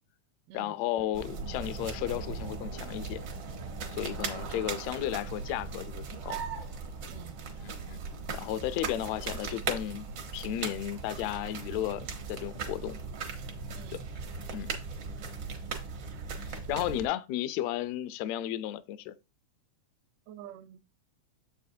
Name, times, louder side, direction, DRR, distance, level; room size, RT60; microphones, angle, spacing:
voice 1, 0.5-3.2 3.9-6.4 7.6-8.0 8.3-10.1 10.3-13.0 13.9-14.0 14.5-14.7 16.5-19.2, left 12 dB, 80° left, 1.5 m, -34 dB
sound 1, 1.1-17.1, right 5 dB, 65° right, 1.1 m, -38 dB
voice 2, 20.3-20.8, right 9 dB, 85° right, 2.1 m, -48 dB
7.5 x 6.4 x 2.7 m
omnidirectional pair, 3.7 m